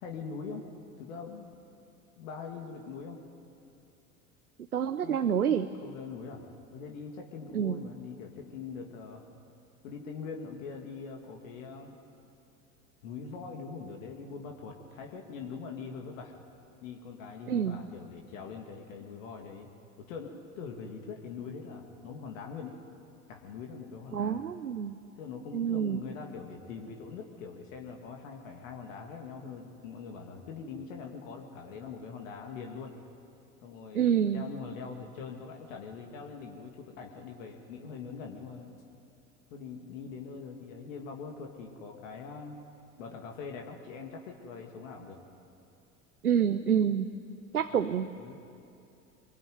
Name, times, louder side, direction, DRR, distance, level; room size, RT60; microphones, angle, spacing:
voice 1, 0.0-0.7 1.0-1.6 2.2-3.2 5.0-5.4 5.8-9.2 9.8-12.0 13.0-16.3 16.8-19.7 20.0-22.8 23.3-24.4 25.2-33.0 33.6-38.7 39.5-42.6 43.0-45.2 47.7-47.9 48.1-48.4, left 5 dB, 65° left, 2 dB, 2.5 m, -43 dB
voice 2, 4.7-5.7 7.5-7.8 17.5-17.8 24.1-25.0 25.5-26.0 33.9-34.4 46.2-47.1 47.5-48.1, right 8 dB, 85° right, 10 dB, 0.7 m, -27 dB
23.5 x 21.5 x 9.4 m, 2.6 s
figure-of-eight pair, 75°, 43 cm